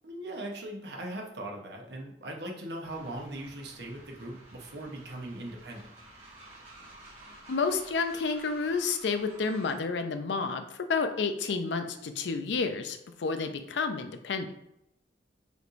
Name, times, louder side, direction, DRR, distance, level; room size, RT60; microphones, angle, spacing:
voice 1, 0.0-5.9, right 1 dB, 75° right, 0 dB, 0.9 m, -39 dB
Train, 2.8-9.9, right 1 dB, 35° right, 1.3 m, -52 dB
voice 2, 7.5-14.5, left 4 dB, 85° left, 8 dB, 0.5 m, -30 dB
5.0 x 3.1 x 2.5 m, 0.82 s
head